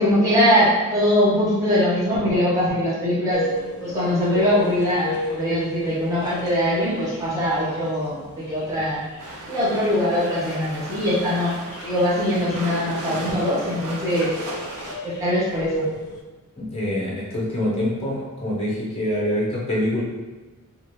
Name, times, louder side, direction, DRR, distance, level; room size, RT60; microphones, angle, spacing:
voice 1, 0.0-3.4 3.8-9.0 9.5-11.5 11.8-14.3 15.0-15.9, equal, 15° right, -10 dB, 0.7 m, -22 dB
sound 1, 3.3-16.2, left 1 dB, 75° left, 0.5 m, -35 dB
sound 2, 9.2-14.9, right 1 dB, 70° right, 0.6 m, -36 dB
voice 2, 16.6-20.0, left 1 dB, 25° left, -4 dB, 0.7 m, -25 dB
2.8 x 2.3 x 3.1 m, 1.2 s
head